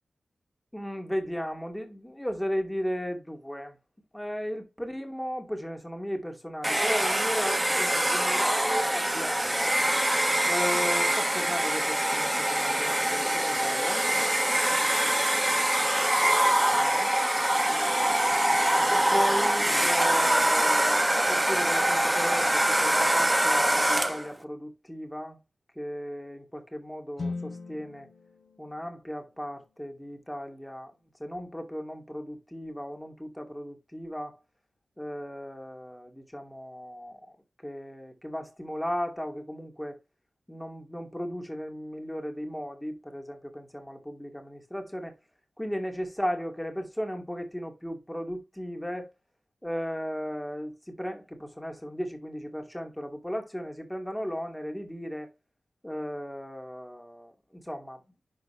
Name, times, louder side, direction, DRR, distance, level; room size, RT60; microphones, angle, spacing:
voice 1, 0.7-3.8 4.1-9.7 10.4-14.0 16.7-17.1 18.9-25.4 25.8-28.1 28.6-30.9 31.2-34.4 35.0-37.4 37.6-40.0 40.5-45.2 45.6-49.1 49.6-55.3 55.8-58.0, equal, 5° left, 2.3 m, -35 dB
Domestic sounds home sounds, 6.6-24.3, right 1 dB, 10° right, 1.1 m, -24 dB
sound 1, 27.2-31.2, left 3 dB, 55° left, 2.7 m, -42 dB
11.5 x 3.9 x 3.3 m
wide cardioid pair, 105°, 0 cm